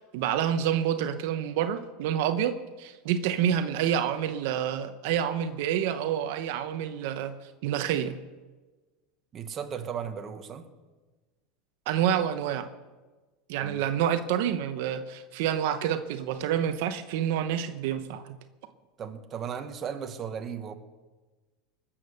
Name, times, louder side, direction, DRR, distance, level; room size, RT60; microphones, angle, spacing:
voice 1, 0.0-7.3 7.6-8.1 11.9-12.7 13.5-18.4, right 9 dB, 70° right, 8 dB, 0.8 m, -28 dB
voice 2, 9.3-10.7 13.6-13.8 19.0-20.8, right 7 dB, 30° right, 6 dB, 1.2 m, -36 dB
20.0 x 7.4 x 6.7 m, 1.3 s
supercardioid pair, 135°, 0 cm